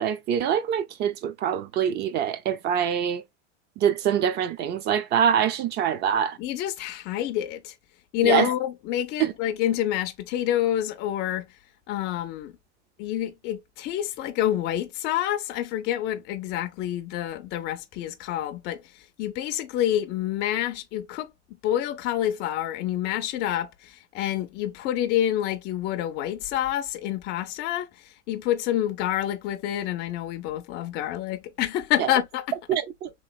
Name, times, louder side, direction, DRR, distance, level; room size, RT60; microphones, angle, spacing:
voice 1, 0.0-3.2 3.8-6.4 8.2-8.5 9.2-9.3 32.0-32.1 32.7-33.1, right 9 dB, 30° right, 0.4 m, -24 dB
voice 2, 6.4-7.8 8.1-11.5 11.9-12.5 13.0-21.3 21.6-32.6, left 12 dB, 30° left, 0.4 m, -28 dB
3.0 x 2.9 x 2.3 m
hypercardioid pair, 115°, 36 cm